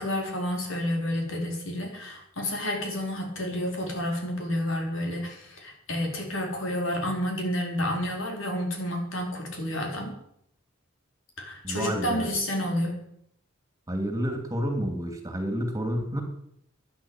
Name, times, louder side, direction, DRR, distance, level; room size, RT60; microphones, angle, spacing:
voice 1, 0.0-10.1 11.4-13.0, left 1 dB, 75° left, 2 dB, 4.8 m, -30 dB
voice 2, 11.6-12.3 13.9-16.2, equal, 15° right, 4 dB, 2.8 m, -29 dB
12.5 x 10.5 x 9.1 m, 0.71 s
head